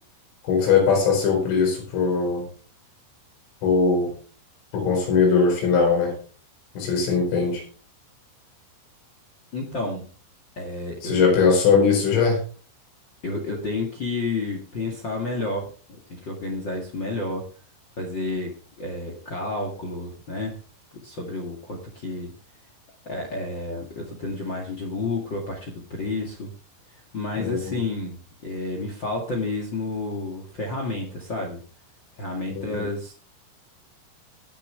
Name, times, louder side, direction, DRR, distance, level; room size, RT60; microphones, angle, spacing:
voice 1, 0.5-2.5 3.6-4.1 4.7-6.2 6.8-7.6 11.0-12.4 27.4-27.8 32.5-32.8, left 5 dB, 85° left, 1 dB, 7.2 m, -20 dB
voice 2, 9.5-10.0 10.5-11.3 13.2-15.7 16.1-17.5 18.0-20.6 21.0-22.3 23.0-26.5 27.1-28.2 28.4-31.6 32.2-33.1, left 2 dB, 60° left, 1 dB, 1.1 m, -30 dB
20.5 x 6.9 x 3.4 m, 0.37 s
omnidirectional pair, 5.7 m